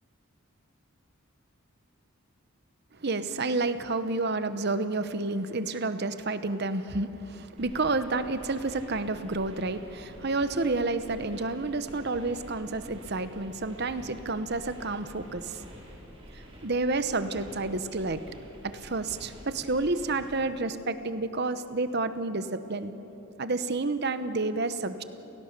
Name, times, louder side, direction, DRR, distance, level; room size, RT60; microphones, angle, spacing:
voice 1, 3.0-15.6 16.6-18.2 18.6-22.9 23.4-25.0, right 3 dB, 50° right, 11 dB, 1.0 m, -30 dB
sound 1, 7.6-20.4, equal, 25° right, 4.6 m, -48 dB
29.5 x 17.0 x 6.8 m, 3.0 s
head